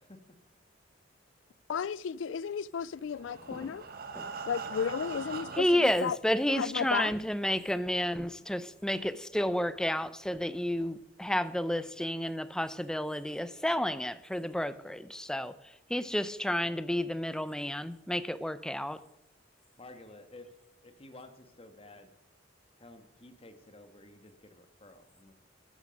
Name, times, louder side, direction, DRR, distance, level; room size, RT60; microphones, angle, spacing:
voice 1, 1.7-3.8 4.5-6.2 6.5-7.1, left 7 dB, 70° left, 0.4 m, -34 dB
Breathing, 3.0-6.0 6.7-6.8 7.2-7.3 7.7-7.8, right 4 dB, 50° right, 1.2 m, -42 dB
voice 2, 5.6-15.5 15.9-19.0, left 1 dB, 5° left, 0.5 m, -31 dB
voice 3, 19.8-20.5 20.8-22.1 22.8-25.3, left 2 dB, 30° left, 1.4 m, -52 dB
13.5 x 11.5 x 5.2 m
head